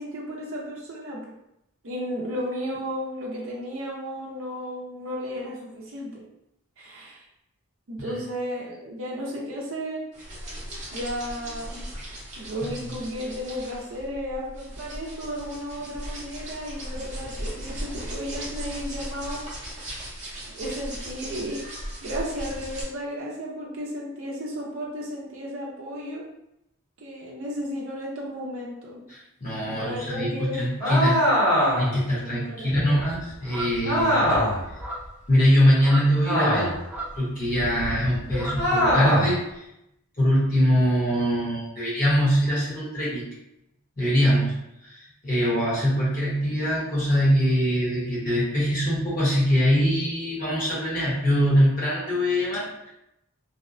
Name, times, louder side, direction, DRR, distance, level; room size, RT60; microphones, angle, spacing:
voice 1, 0.0-1.3 1.8-6.2 6.8-7.2 7.9-10.0 10.9-11.9 12.4-19.4 19.8-20.0 20.5-21.7 22.0-26.2 27.0-29.1 29.6-30.7 32.2-32.9 37.9-38.0 38.3-38.5, equal, 70° right, -4 dB, 0.5 m, -34 dB
sound 1, 10.1-22.8, equal, 35° right, 0.7 m, -37 dB
voice 2, 29.1-31.2 31.8-34.3 35.3-36.7 37.1-39.6 40.2-43.2 44.0-44.5 44.8-52.7, equal, 40° left, -7 dB, 1.0 m, -23 dB
sound 2, 30.8-32.0 33.8-34.7 36.2-36.9 38.6-39.4, equal, 55° left, 1.4 m, -22 dB
sound 3, 33.0-39.1, right 1 dB, 5° right, 0.3 m, -37 dB
2.6 x 2.1 x 2.5 m, 0.85 s
head